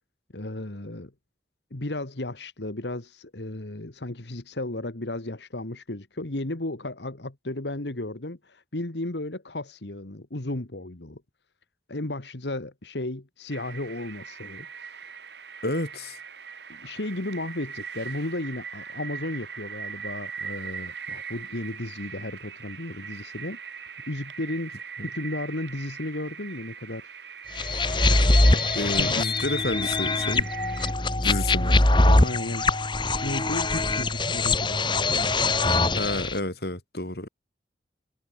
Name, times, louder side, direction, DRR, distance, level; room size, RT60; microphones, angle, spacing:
voice 1, 0.3-1.1 1.7-11.2 11.9-14.7 15.0-15.2 16.7-23.6 24.1-27.2 28.1-29.1 32.1-32.7 33.2-36.2, left 1 dB, 80° left, 1.9 m, -34 dB
sound 1, 13.5-30.9, right 6 dB, 75° right, 3.3 m, -40 dB
voice 2, 15.6-16.2 25.0-25.1 28.7-30.5 31.2-31.8 36.0-37.3, left 1 dB, 65° left, 3.9 m, -30 dB
sound 2, 27.6-36.4, left 2 dB, 25° left, 2.1 m, -22 dB
head